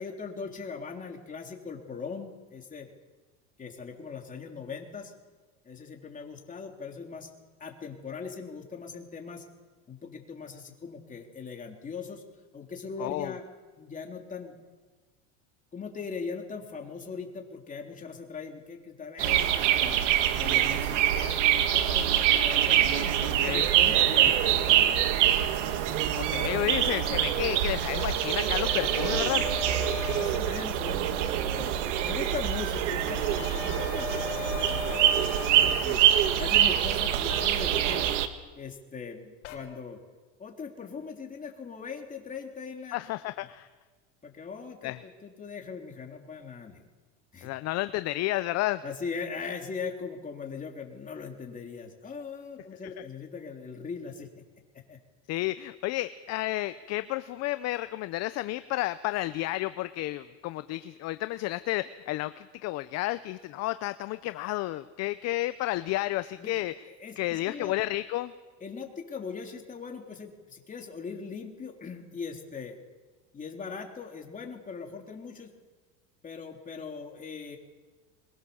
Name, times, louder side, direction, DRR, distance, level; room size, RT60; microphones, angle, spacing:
voice 1, 0.0-2.9 3.6-5.1 5.7-7.3 7.6-9.4 9.9-12.2 12.5-13.4 13.8-14.6 15.7-20.0 20.4-25.0 30.0-35.0 35.5-36.1 36.4-38.1 38.6-40.0 40.4-42.9 44.2-46.8 47.3-47.5 48.8-54.4 54.9-55.0 66.4-66.5 67.0-67.7 68.6-72.8 73.3-75.5 76.2-77.6, left 5 dB, 20° left, 2 dB, 3.6 m, -40 dB
voice 2, 13.0-13.3 23.0-23.7 26.1-29.4 42.9-43.7 44.8-45.0 47.4-48.8 55.3-66.7 67.2-68.3, left 17 dB, 45° left, 13 dB, 0.7 m, -31 dB
sound 1, 19.2-38.3, right 11 dB, 85° right, 1.7 m, -25 dB
sound 2, 28.0-30.4 33.1-35.8 37.3-37.5 39.4-39.6, left 8 dB, 80° left, 4.7 m, -37 dB
22.5 x 22.0 x 7.2 m, 1.3 s
supercardioid pair, 125°, 36 cm